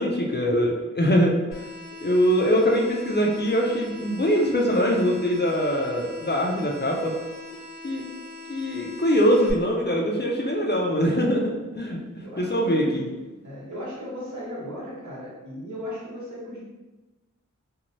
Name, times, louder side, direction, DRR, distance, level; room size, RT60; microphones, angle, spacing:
voice 1, 0.0-1.4 2.0-7.1 7.8-8.0 8.5-12.0 12.4-13.1, equal, 35° left, -1 dB, 0.4 m, -23 dB
sound 1, 1.5-9.5, left 3 dB, 80° left, 0.8 m, -41 dB
voice 2, 11.8-16.6, left 1 dB, 65° right, -7 dB, 1.0 m, -37 dB
2.6 x 2.0 x 3.0 m, 1.1 s
wide cardioid pair, 45°, 31 cm